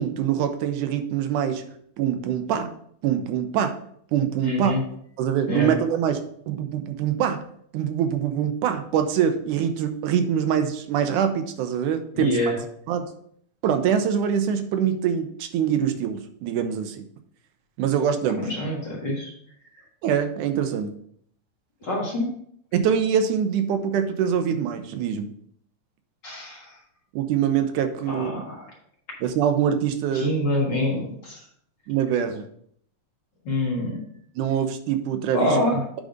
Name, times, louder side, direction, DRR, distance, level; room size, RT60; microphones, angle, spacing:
voice 1, 0.0-1.6 2.0-2.7 3.0-3.7 4.1-4.8 5.2-7.4 7.7-12.4 12.9-13.1 13.6-17.1 17.8-18.5 20.0-20.9 22.7-25.3 27.1-28.4 29.2-30.3 31.9-32.4 34.4-35.5, right 8 dB, 85° right, 7 dB, 2.2 m, -24 dB
voice 2, 4.4-4.8 5.5-5.7 12.1-12.6 18.3-19.3 21.8-22.3 26.2-26.7 28.1-28.7 30.1-31.4 33.4-34.0 35.3-35.8, left 1 dB, 45° left, -3 dB, 1.8 m, -26 dB
8.5 x 3.8 x 5.1 m, 0.65 s
omnidirectional pair, 3.5 m